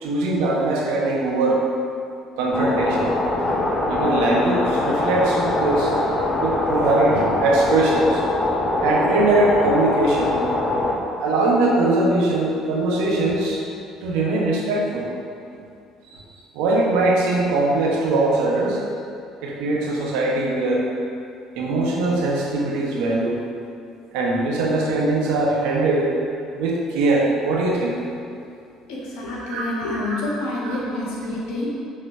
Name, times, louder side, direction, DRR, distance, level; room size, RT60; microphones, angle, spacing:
voice 1, 0.0-1.6 2.4-3.1 3.4-3.6 3.9-5.9 6.4-8.2 8.8-10.4 11.2-13.6 14.0-15.1 16.1-16.2 16.5-18.8 19.4-20.9 21.6-23.4 24.1-26.1 26.5-28.0 29.4-30.2 30.6-30.8, right 2 dB, 70° right, -2 dB, 1.2 m, -21 dB
sound 1, 2.5-10.9, left 2 dB, 40° left, 1.0 m, -23 dB
voice 2, 28.9-31.7, left 2 dB, 70° left, -5 dB, 1.6 m, -28 dB
6.7 x 3.7 x 5.5 m, 2.4 s
hypercardioid pair, 55°, 0 cm